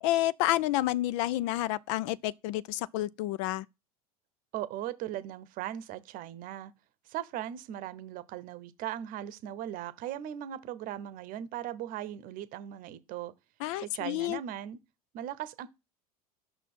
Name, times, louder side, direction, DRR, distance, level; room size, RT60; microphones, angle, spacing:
voice 1, 0.0-3.7 13.6-14.4, left 15 dB, 60° left, 0.4 m, -29 dB
voice 2, 4.5-6.7 7.1-13.3 13.7-14.8 15.1-15.7, right 12 dB, 50° right, 0.8 m, -38 dB
5.9 x 4.1 x 5.4 m
hypercardioid pair, 75°, 19 cm